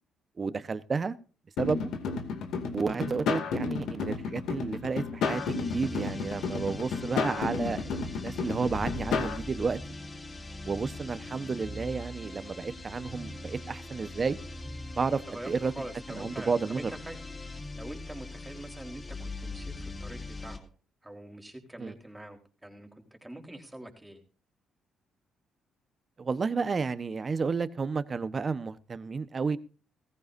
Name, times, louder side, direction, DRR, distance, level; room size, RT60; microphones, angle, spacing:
voice 1, 0.4-1.1 1.6-1.9 2.7-5.4 5.7-9.8 10.6-14.4 15.0-15.7 16.1-16.9 21.8-21.9 26.2-29.6, right 4 dB, 35° right, 1.1 m, -31 dB
sound 1, 1.6-9.4, left 5 dB, 80° left, 2.5 m, -32 dB
voice 2, 3.2-3.6 15.0-17.2 17.7-20.7 21.0-24.2, right 1 dB, 10° right, 4.0 m, -44 dB
sound 2, 5.2-20.7, left 2 dB, 25° left, 2.2 m, -41 dB
18.0 x 15.0 x 2.7 m
cardioid pair, 90°, 0 cm